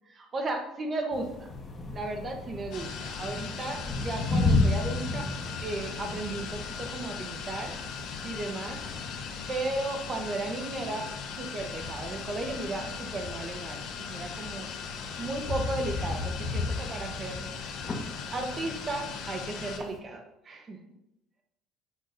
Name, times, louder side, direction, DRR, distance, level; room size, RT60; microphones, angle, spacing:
voice 1, 0.2-1.5 1.9-5.3 5.6-7.7 8.1-8.8 9.5-14.7 15.2-17.5 18.3-20.9, right 2 dB, 25° right, 4 dB, 1.2 m, -35 dB
sound 1, 1.1-20.0, left 3 dB, 25° left, 1.3 m, -35 dB
sound 2, 2.7-19.8, left 6 dB, 65° left, 1.3 m, -39 dB
8.3 x 3.7 x 5.2 m, 0.86 s
cardioid pair, 150°, 0 cm